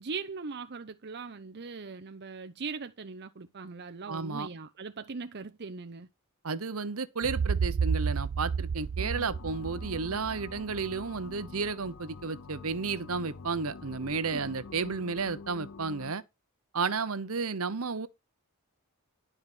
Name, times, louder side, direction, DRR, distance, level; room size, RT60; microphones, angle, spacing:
voice 1, 0.0-6.1 14.3-14.5, right 4 dB, 50° right, 0.7 m, -40 dB
voice 2, 4.1-4.5 6.4-16.2 16.7-18.1, right 4 dB, 70° right, 1.0 m, -32 dB
sound 1, 7.2-11.1, right 6 dB, 90° right, 0.5 m, -31 dB
sound 2, 9.0-16.1, left 4 dB, 60° left, 0.7 m, -46 dB
12.0 x 4.9 x 6.1 m
head